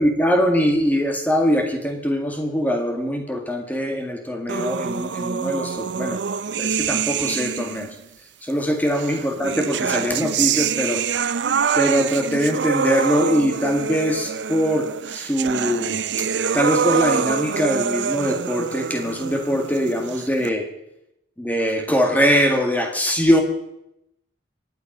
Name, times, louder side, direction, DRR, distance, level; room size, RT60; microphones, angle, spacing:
voice 1, 0.0-6.2 6.6-8.0 8.4-11.3 11.7-16.3 16.5-20.7 21.4-23.4, equal, 10° left, 4 dB, 1.9 m, -22 dB
sound 1, 4.5-7.9 8.9-20.5, right 7 dB, 70° right, 0.5 m, -25 dB
24.0 x 9.3 x 5.4 m, 0.83 s
head